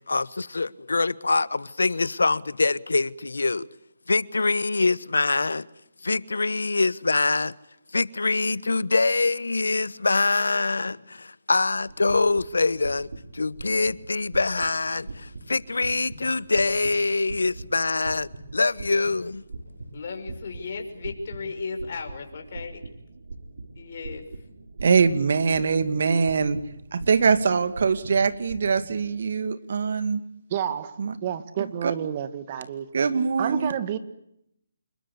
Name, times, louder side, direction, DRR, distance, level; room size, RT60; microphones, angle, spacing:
voice 1, 0.1-3.7 4.1-5.7 6.0-7.5 7.9-19.4, left 3 dB, 85° left, 1.2 m, -24 dB
sound 1, 11.7-29.1, right 2 dB, 75° right, 4.2 m, -42 dB
voice 2, 19.9-22.8 23.8-24.2, left 4 dB, 50° left, 5.9 m, -35 dB
voice 3, 24.8-26.6 26.9-30.2 31.0-31.1 31.8-31.9 32.9-33.7, right 5 dB, 60° right, 2.4 m, -23 dB
voice 4, 30.5-32.9 33.4-34.0, right 9 dB, 30° right, 1.9 m, -30 dB
27.5 x 22.0 x 8.6 m
hypercardioid pair, 160°, 0 cm